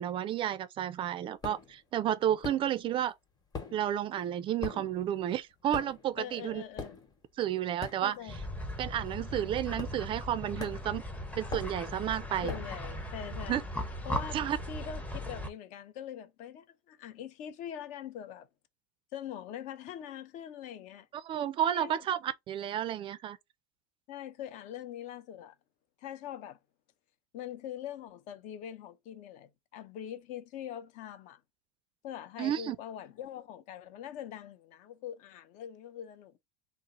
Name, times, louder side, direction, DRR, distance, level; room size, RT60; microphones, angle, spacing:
voice 1, 0.0-3.1 3.7-6.6 7.4-8.2 8.8-11.0 11.4-12.5 13.5-13.6 14.3-14.6 21.2-23.4 32.4-32.8, right 11 dB, 35° right, 0.3 m, -31 dB
sound 1, 1.4-1.8 2.4-3.1 3.3-8.5 8.7-9.0 9.8-10.3 10.6-12.8, left 4 dB, 25° left, 1.0 m, -43 dB
voice 2, 6.2-7.0 8.0-8.4 12.4-13.6 14.0-14.4 14.7-18.5 19.1-21.1 21.7-22.0 24.1-25.5 26.0-26.6 27.3-31.4 32.0-36.4, left 10 dB, 50° left, 0.5 m, -43 dB
sound 2, 8.3-15.5, equal, 10° left, 0.6 m, -38 dB
2.7 x 2.0 x 3.8 m
supercardioid pair, 120°, 16 cm